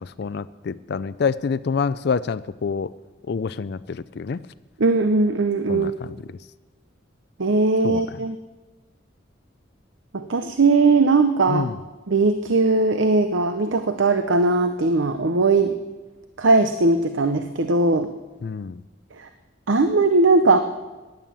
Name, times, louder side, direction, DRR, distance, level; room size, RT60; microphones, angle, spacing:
voice 1, 0.0-2.9 3.3-4.4 5.7-5.9 7.8-8.0 11.5-11.8 18.4-18.8, left 5 dB, 55° left, 14 dB, 0.4 m, -26 dB
voice 2, 4.8-5.9 7.4-8.4 10.1-11.7 12.1-15.8 16.4-18.1 19.2-19.3 19.7-20.6, right 3 dB, 75° right, 9 dB, 0.7 m, -19 dB
16.5 x 10.5 x 7.4 m, 1.2 s
head